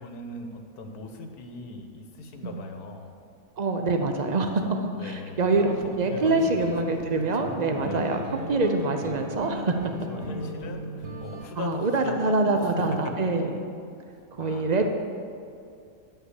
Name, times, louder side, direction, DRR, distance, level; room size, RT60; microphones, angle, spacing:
voice 1, 0.0-3.1 4.6-5.7 6.0-8.6 9.9-12.3 12.6-12.7 14.4-14.7, left 3 dB, 80° left, 5 dB, 1.4 m, -40 dB
voice 2, 3.6-4.6 5.0-8.2 8.5-9.7 11.6-13.6 14.3-14.9, right 3 dB, 65° right, 5 dB, 0.4 m, -25 dB
sound 1, 5.5-11.5, right 2 dB, 40° right, 1.6 m, -37 dB
10.5 x 5.6 x 8.1 m, 2.4 s
omnidirectional pair, 1.7 m